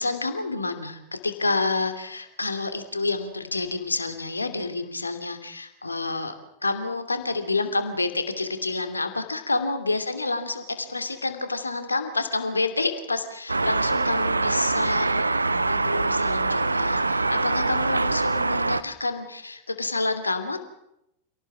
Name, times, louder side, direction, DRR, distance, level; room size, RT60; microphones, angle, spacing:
voice 1, 0.0-6.3 6.6-20.6, left 3 dB, 80° left, 8 dB, 2.8 m, -28 dB
sound 1, 13.5-18.8, right 3 dB, 80° right, 0.9 m, -24 dB
27.5 x 18.5 x 7.4 m, 0.82 s
figure-of-eight pair, 90°, 0 cm